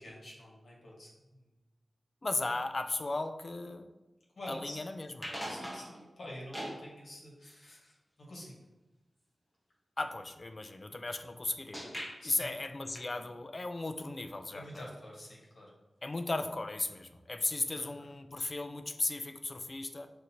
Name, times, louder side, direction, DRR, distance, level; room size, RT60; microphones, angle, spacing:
voice 1, 0.0-1.5 4.4-4.8 5.5-8.5 12.2-12.5 14.5-15.7 17.7-17.8, left 1 dB, 75° left, -4 dB, 1.3 m, -47 dB
voice 2, 2.2-3.9 4.5-5.5 10.0-11.9 12.2-14.6 16.0-20.1, left 2 dB, 40° left, 8 dB, 0.3 m, -36 dB
sound 1, 5.2-6.1 6.5-6.8 11.7-12.2 13.0-13.3 16.4-16.5 16.8-16.9 18.1-18.2, equal, 5° left, 0.8 m, -41 dB
5.9 x 2.5 x 2.8 m, 1.1 s
wide cardioid pair, 80°, 0 cm